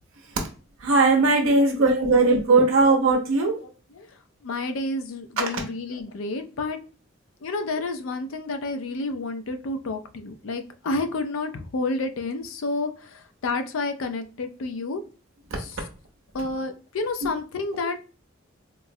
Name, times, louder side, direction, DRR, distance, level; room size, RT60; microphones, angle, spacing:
voice 1, 0.8-3.6 5.4-5.6 17.2-17.3, right 3 dB, 75° right, 2 dB, 0.6 m, -19 dB
voice 2, 4.4-6.8 7.4-15.0 16.3-18.1, left 3 dB, 80° left, 7 dB, 0.4 m, -30 dB
3.7 x 2.0 x 2.6 m, 0.35 s
head